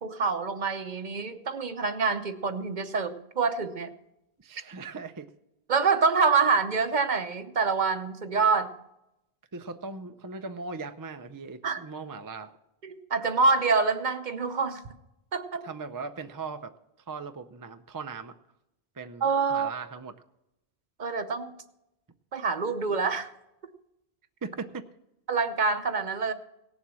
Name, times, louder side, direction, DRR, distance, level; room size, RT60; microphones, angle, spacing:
voice 1, 0.0-3.9 5.7-8.7 11.6-11.8 12.8-14.8 15.3-15.6 19.2-19.7 21.0-21.5 22.3-23.3 25.3-26.3, right 4 dB, 50° right, 10 dB, 0.8 m, -26 dB
voice 2, 4.4-5.3 9.5-12.5 15.6-16.7 17.1-18.4 19.0-20.1 24.4-24.8, right 4 dB, 25° right, 8 dB, 0.4 m, -39 dB
17.5 x 7.2 x 6.2 m, 0.88 s
omnidirectional pair, 1.1 m